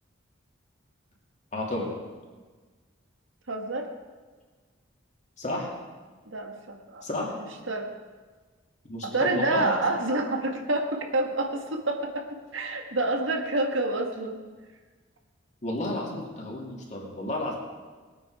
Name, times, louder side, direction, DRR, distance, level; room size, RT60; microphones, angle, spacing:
voice 1, 1.5-2.0 5.4-5.7 7.0-7.4 8.9-10.0 15.6-17.6, left 1 dB, 35° left, -2 dB, 2.7 m, -32 dB
voice 2, 3.5-3.9 6.3-7.1 7.3-7.9 9.0-12.3 12.5-14.4, right 2 dB, 80° right, 4 dB, 1.6 m, -28 dB
20.5 x 9.0 x 4.9 m, 1.4 s
head